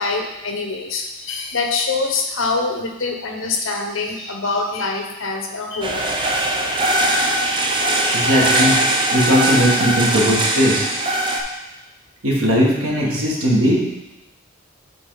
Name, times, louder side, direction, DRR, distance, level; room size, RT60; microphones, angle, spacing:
voice 1, 0.0-6.1 6.6-6.7, left 3 dB, 65° left, 3 dB, 1.0 m, -24 dB
sound 1, 5.8-11.4, right 1 dB, 25° right, 0.6 m, -20 dB
voice 2, 8.1-8.8 9.1-10.9 12.2-13.8, equal, 90° right, -4 dB, 1.8 m, -18 dB
7.9 x 4.2 x 3.9 m, 1.0 s
head